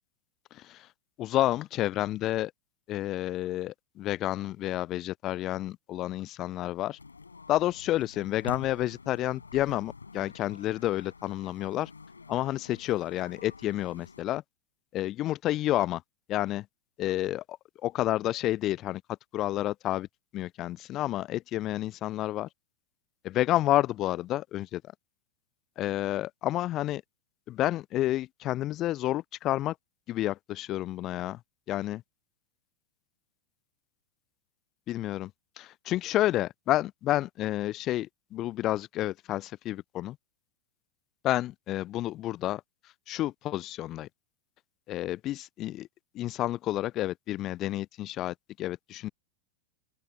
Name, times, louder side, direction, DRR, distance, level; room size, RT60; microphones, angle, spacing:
voice 1, 0.5-0.9 1.2-2.5 2.9-7.0 7.5-11.9 12.3-14.4 14.9-16.0 16.3-16.7 17.0-19.0 19.3-20.1 20.3-22.5 23.2-24.8 25.8-27.0 27.5-29.8 30.1-31.4 31.7-32.0 34.9-35.3 35.6-40.2 41.2-42.6 43.1-44.1 44.9-45.9 46.1-49.1, left 14 dB, 35° left, 0.5 m, -30 dB
sound 1, 7.0-14.2, left 4 dB, 75° left, 6.6 m, -46 dB
figure-of-eight pair, 90°, 0 cm